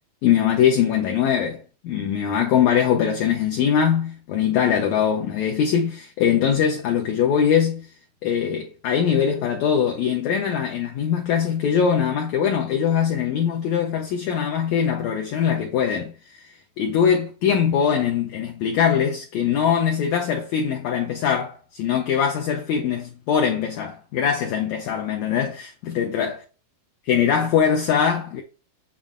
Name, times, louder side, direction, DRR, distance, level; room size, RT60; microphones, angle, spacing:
voice 1, 0.2-7.9 8.2-16.5 16.8-26.3 27.1-28.4, left 8 dB, 75° left, 1.7 m, -22 dB
7.3 x 6.3 x 2.4 m
omnidirectional pair, 3.9 m